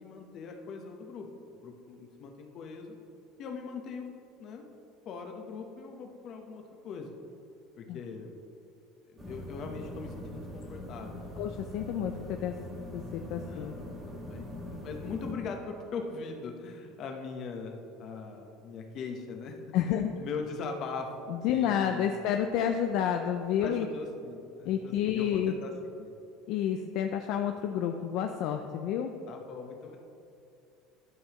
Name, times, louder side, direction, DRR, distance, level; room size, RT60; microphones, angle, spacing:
voice 1, 0.0-3.0 3.4-4.1 4.4-4.6 5.0-7.1 7.8-8.3 9.1-11.4 13.4-13.8 14.1-17.7 18.0-19.8 20.1-22.2 23.6-25.7 26.0-26.1 29.3-30.0, left 4 dB, 50° left, 3 dB, 1.0 m, -40 dB
sound 1, 9.2-15.3, left 1 dB, 20° right, 1.7 m, -42 dB
voice 2, 11.4-12.6 12.9-13.7 19.7-20.1 21.3-23.9 24.7-25.6 26.5-29.1, left 9 dB, 65° left, 5 dB, 0.4 m, -30 dB
12.5 x 5.5 x 3.0 m, 2.6 s
supercardioid pair, 125°, 0 cm